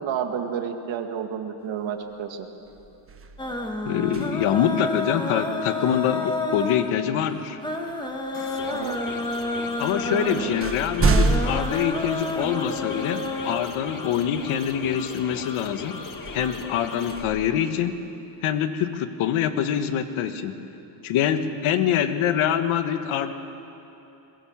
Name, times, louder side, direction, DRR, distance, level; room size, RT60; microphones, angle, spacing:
voice 1, 0.0-2.5 8.7-9.0 10.0-10.5 17.2-17.4, right 8 dB, 65° right, 5 dB, 2.1 m, -30 dB
sound 1, 2.0-2.3 2.6-4.7 6.9-7.1 7.9-8.6 9.5-9.6 10.0-12.8 13.4-13.5 16.1-18.3, right 3 dB, 25° right, 1.3 m, -28 dB
sound 2, 3.4-13.5, left 2 dB, 10° left, 1.9 m, -30 dB
voice 2, 3.8-7.6 9.8-16.0 16.3-18.0 18.4-20.6 21.0-23.3, left 9 dB, 75° left, 9 dB, 1.5 m, -25 dB
sound 3, 8.3-17.2, left 4 dB, 40° left, 2.1 m, -38 dB
22.0 x 21.5 x 7.4 m, 2.9 s
cardioid pair, 125°, 49 cm